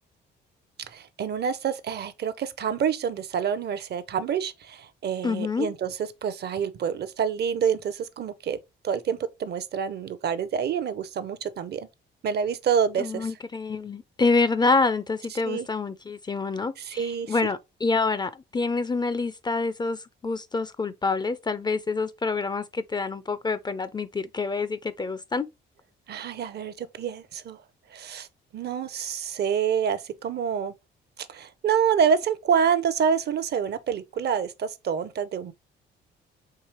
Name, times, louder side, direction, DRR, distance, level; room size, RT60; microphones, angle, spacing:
voice 1, 0.9-8.6 8.8-11.9 12.2-13.3 15.4-15.7 16.8-17.4 26.1-27.6 27.9-28.3 28.5-30.7 31.2-35.5, right 7 dB, 55° right, 0.6 m, -27 dB
voice 2, 5.2-5.7 13.0-25.5, left 4 dB, 20° left, 0.4 m, -27 dB
4.7 x 3.1 x 3.0 m
cardioid pair, 90°, 20 cm